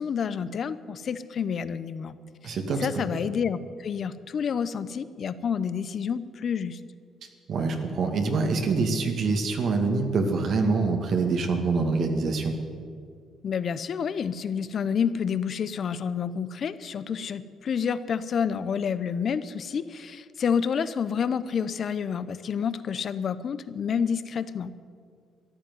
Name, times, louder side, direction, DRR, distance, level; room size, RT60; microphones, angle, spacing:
voice 1, 0.0-2.1 2.4-6.8 13.4-24.7, left 7 dB, 55° left, 14 dB, 0.8 m, -29 dB
voice 2, 2.4-2.9 7.5-12.5, right 4 dB, 60° right, 3 dB, 2.0 m, -25 dB
13.5 x 11.0 x 9.4 m, 2.1 s
cardioid pair, 100°, 0 cm